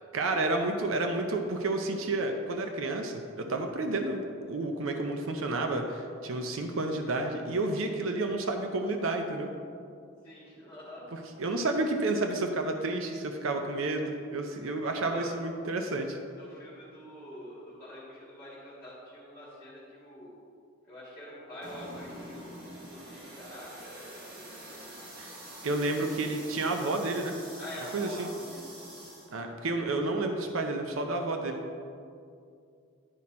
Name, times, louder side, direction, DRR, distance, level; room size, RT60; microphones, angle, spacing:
voice 1, 0.1-9.5 11.1-16.2 25.2-25.4 25.6-27.4 27.9-28.3 29.3-31.6, right 2 dB, 70° right, 4 dB, 0.6 m, -30 dB
voice 2, 10.2-11.1 14.9-15.4 16.4-20.4 20.9-25.1 27.6-28.6, equal, 10° left, -8 dB, 1.7 m, -45 dB
sound 1, 21.6-29.3, right 1 dB, 45° right, 1.7 m, -46 dB
10.5 x 4.2 x 4.2 m, 2.4 s
head